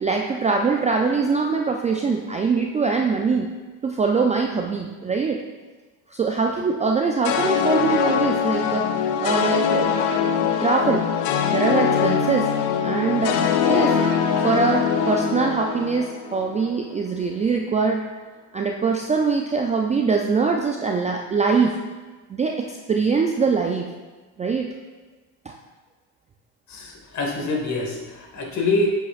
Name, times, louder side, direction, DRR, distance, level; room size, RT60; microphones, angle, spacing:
voice 1, 0.0-3.5 3.8-5.4 6.1-8.9 9.2-9.9 10.1-11.0 11.5-12.5 12.8-13.4 13.7-14.0 14.4-18.0 18.5-21.8 22.3-23.9 24.4-24.7 25.5-25.6, right 4 dB, 20° right, 2 dB, 0.3 m, -23 dB
sound 1, 7.2-16.6, left 7 dB, 85° left, 0.6 m, -22 dB
voice 2, 26.7-28.9, left 2 dB, 40° left, 0 dB, 1.7 m, -25 dB
7.9 x 5.8 x 2.4 m, 1.3 s
supercardioid pair, 85°, 42 cm